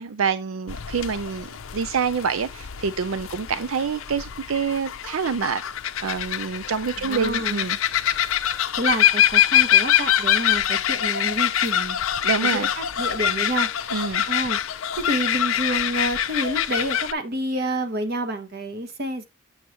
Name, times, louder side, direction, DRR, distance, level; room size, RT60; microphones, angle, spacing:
voice 1, 0.0-5.6 6.0-7.8 12.2-12.7 13.9-14.2, right 6 dB, 80° right, 0.5 m, -26 dB
sound 1, 0.7-17.1, left 10 dB, 80° left, 0.5 m, -24 dB
voice 2, 7.0-7.7 8.7-12.0 12.4-13.7 14.3-14.6 14.9-19.3, right 1 dB, 50° right, 1.2 m, -28 dB
7.4 x 7.0 x 2.9 m
head